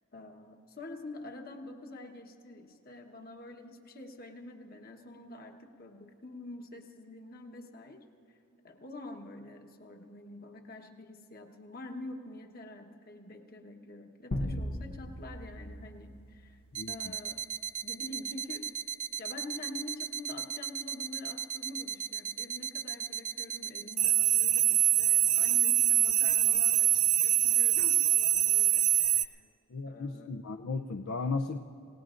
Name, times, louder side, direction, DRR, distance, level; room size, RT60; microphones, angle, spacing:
voice 1, 0.1-8.4 8.6-16.6 16.9-17.4 17.8-18.7 19.2-29.4 29.9-30.4, left 2 dB, 45° left, 4 dB, 1.2 m, -47 dB
sound 1, 14.3-16.9, left 1 dB, 90° left, 1.1 m, -38 dB
voice 2, 16.7-17.1 29.7-31.6, left 3 dB, 60° left, 5 dB, 0.5 m, -35 dB
sound 2, 16.7-29.2, right 12 dB, 35° right, 0.3 m, -27 dB
28.0 x 18.0 x 2.5 m, 2.9 s
head